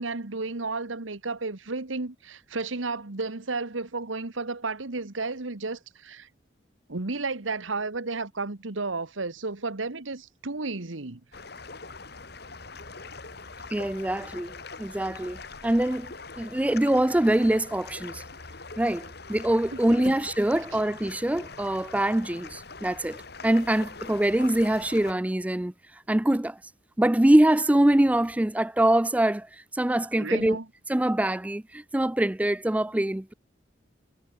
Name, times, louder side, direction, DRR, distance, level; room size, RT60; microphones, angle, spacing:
voice 1, 0.0-6.3 6.9-11.2 19.9-20.2 30.2-30.7, right 3 dB, 85° right, 1.6 m, -32 dB
sound 1, 11.3-25.1, left 4 dB, 55° left, 2.3 m, -43 dB
voice 2, 13.7-18.2 18.8-19.0 19.3-23.2 23.4-25.7 26.1-26.6 27.0-29.5 29.7-30.6 30.9-33.3, right 1 dB, 5° right, 0.3 m, -24 dB
head